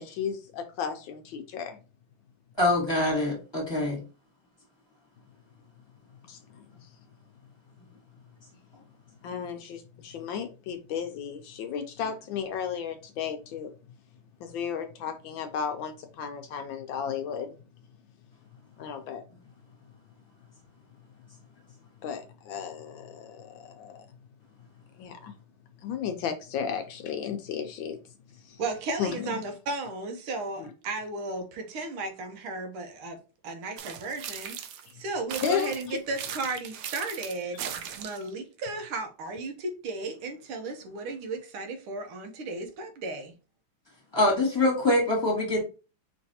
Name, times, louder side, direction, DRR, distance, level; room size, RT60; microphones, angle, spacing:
voice 1, 0.0-1.8 6.3-6.9 9.2-13.7 14.4-17.6 18.8-19.2 22.0-24.1 25.0-25.3 25.8-28.0 28.4-28.6 29.0-29.4 30.6-30.7 35.4-35.7, left 7 dB, 75° left, 1.3 m, -34 dB
voice 2, 2.6-4.0 44.1-45.6, left 1 dB, 15° left, 1.7 m, -24 dB
voice 3, 28.6-33.2 33.4-34.6 34.9-43.3, right 3 dB, 85° right, 1.8 m, -35 dB
sound 1, 33.8-34.9 35.3-38.3, right 8 dB, 70° right, 1.0 m, -38 dB
5.2 x 3.2 x 2.8 m
omnidirectional pair, 2.3 m